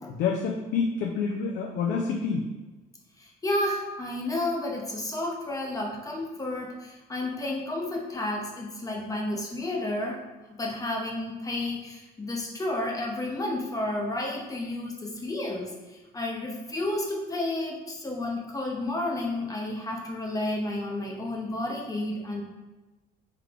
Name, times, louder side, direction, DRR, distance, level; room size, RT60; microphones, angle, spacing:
voice 1, 0.1-2.4, left 5 dB, 80° left, 0 dB, 0.5 m, -28 dB
voice 2, 3.2-10.2 10.5-22.4, left 1 dB, 20° left, -1 dB, 0.8 m, -31 dB
3.4 x 3.2 x 3.7 m, 1.2 s
cardioid pair, 110°, 17 cm